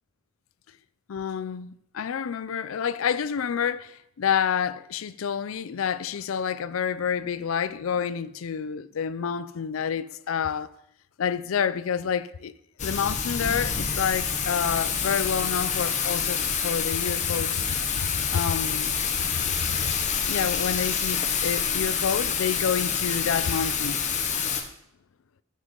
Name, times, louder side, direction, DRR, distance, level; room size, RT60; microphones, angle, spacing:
voice 1, 1.1-10.7 11.2-12.5 12.8-17.7 18.3-18.9 20.2-24.0, left 7 dB, 80° left, 0.4 m, -28 dB
Thunder / Rain, 12.8-24.6, left 7 dB, 35° left, 0.8 m, -27 dB
7.5 x 6.7 x 5.2 m
head